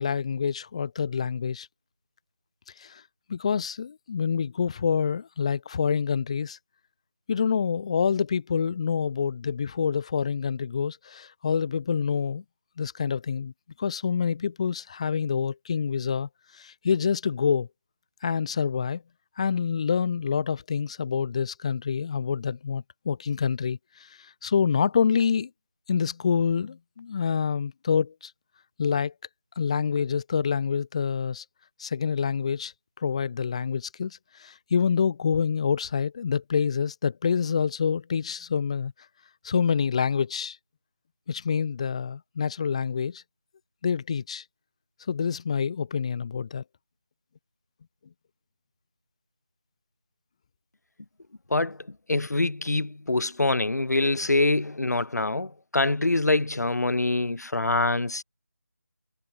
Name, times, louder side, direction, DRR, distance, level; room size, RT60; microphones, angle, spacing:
voice 1, 0.0-1.7 2.8-3.0 3.3-6.6 7.3-12.4 12.8-13.5 13.8-17.7 18.2-19.0 19.4-25.5 25.9-28.3 28.8-29.1 29.6-31.4 31.8-38.9 39.4-40.6 41.3-43.2 43.8-44.4 45.1-46.6, left 6 dB, 20° left, 1.3 m, -27 dB
voice 2, 52.1-58.2, left 2 dB, 75° left, 1.3 m, -25 dB
figure-of-eight pair, 170°, 9 cm